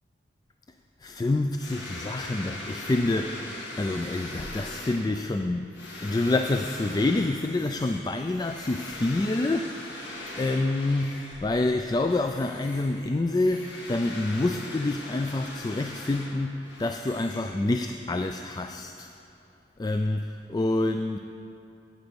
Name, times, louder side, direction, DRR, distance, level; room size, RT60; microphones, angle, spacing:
voice 1, 1.0-10.1 10.4-19.1 19.8-21.2, left 2 dB, 20° left, 6 dB, 0.3 m, -27 dB
sound 1, 1.6-11.6 12.0-18.0, left 2 dB, 85° left, 2.1 m, -41 dB
14.5 x 9.3 x 5.2 m, 2.7 s
head